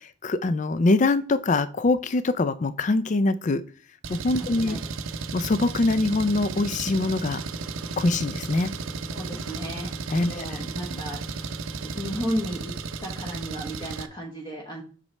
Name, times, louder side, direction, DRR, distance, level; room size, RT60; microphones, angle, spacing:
voice 1, 0.0-3.6 4.1-4.8 5.3-7.4 8.0-8.7 10.1-10.6 10.9-11.0, left 2 dB, 35° left, 12 dB, 0.4 m, -24 dB
Engine, 4.0-14.1, right 4 dB, 75° right, 0.6 m, -34 dB
voice 2, 4.3-4.8 9.1-9.9 10.2-11.4 11.9-12.7 13.0-14.8, equal, 20° left, -1 dB, 1.0 m, -34 dB
7.6 x 5.3 x 3.2 m, 0.40 s
head